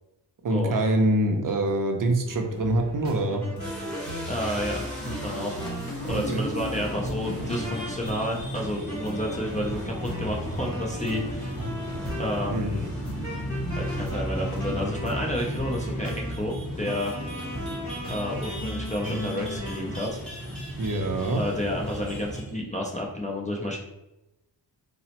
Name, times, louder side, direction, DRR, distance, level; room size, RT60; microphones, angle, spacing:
voice 1, 0.4-3.4 6.1-6.4 12.5-12.7 20.8-21.4, right 1 dB, 50° right, 3 dB, 0.5 m, -25 dB
sound 1, 2.2-20.0, equal, 40° left, 1.2 m, -36 dB
sound 2, 3.6-22.6, equal, ahead, 1.0 m, -35 dB
voice 2, 4.3-4.8 5.0-5.6 6.0-11.6 12.2-12.9 13.8-16.1 16.4-17.1 18.1-20.2 21.3-23.8, left 1 dB, 20° left, -3 dB, 0.3 m, -31 dB
4.0 x 2.0 x 2.8 m, 0.94 s
wide cardioid pair, 155°, 42 cm